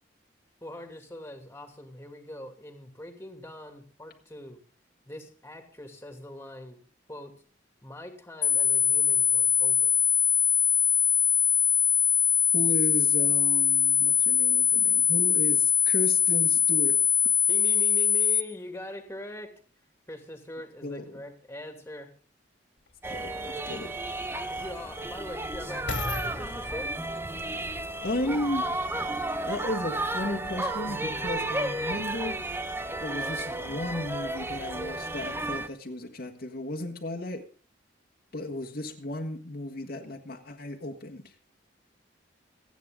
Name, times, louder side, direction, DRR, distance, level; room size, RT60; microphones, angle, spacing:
voice 1, 0.6-4.6 5.1-6.8 7.1-7.3 7.8-10.0 17.5-19.5 20.1-22.1 24.5-26.9, left 1 dB, 15° left, 2.6 m, -42 dB
sound 1, 8.4-18.4, left 8 dB, 40° left, 1.1 m, -22 dB
voice 2, 12.5-17.0 20.8-21.2 23.1-24.0 28.0-28.7 29.4-32.4 33.0-37.5 38.3-41.2, left 1 dB, 55° left, 1.7 m, -34 dB
sound 2, 22.9-23.0 23.7-29.0 29.6-29.7, left 3 dB, 85° left, 2.8 m, -40 dB
sound 3, 23.0-35.7, right 2 dB, 15° right, 0.9 m, -33 dB
27.0 x 9.2 x 3.8 m
head